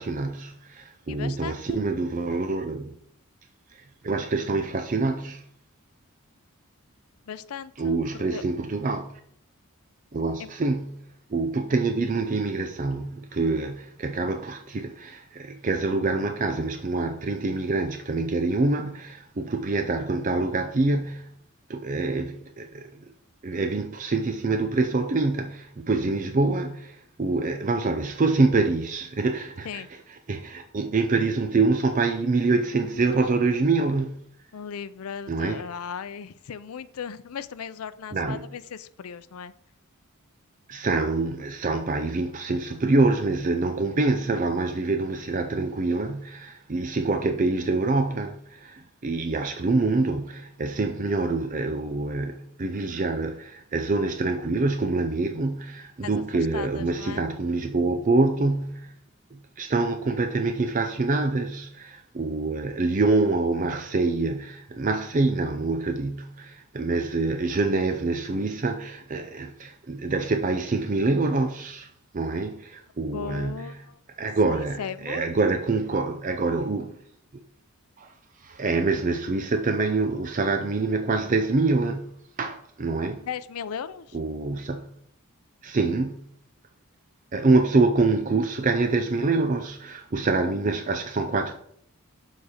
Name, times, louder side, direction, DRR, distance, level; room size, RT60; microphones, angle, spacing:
voice 1, 0.0-3.0 4.0-5.4 7.8-9.2 10.1-21.3 21.7-23.1 23.4-29.8 30.3-34.2 35.3-35.6 38.1-38.5 40.7-58.9 59.3-73.7 74.2-76.9 78.0-78.1 78.4-82.1 82.4-83.3 84.1-84.9 85.6-86.3 87.3-91.5, right 3 dB, 35° right, 0.5 m, -26 dB
voice 2, 1.1-1.5 7.3-8.4 29.6-29.9 34.5-39.5 56.0-56.2 56.5-57.2 73.1-74.0 74.8-75.3 83.3-84.2, left 7 dB, 85° left, 0.4 m, -37 dB
7.0 x 4.1 x 4.9 m
head